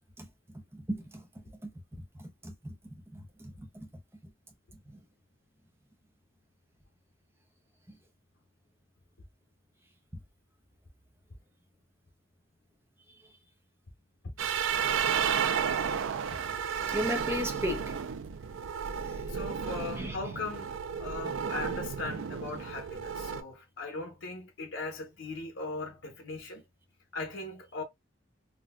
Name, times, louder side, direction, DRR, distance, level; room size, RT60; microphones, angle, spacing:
voice 1, 0.5-1.3 1.6-1.7 2.2-2.8 3.1-3.9 4.9-5.0 7.9-8.0 16.9-17.9 19.0-19.2 20.0-20.2, left 1 dB, 15° right, 0.6 m, -36 dB
sound 1, 14.4-23.4, right 7 dB, 85° right, 0.4 m, -32 dB
voice 2, 19.3-20.7 21.0-26.6 27.1-27.8, left 3 dB, 80° left, 0.8 m, -39 dB
3.8 x 2.2 x 2.2 m
head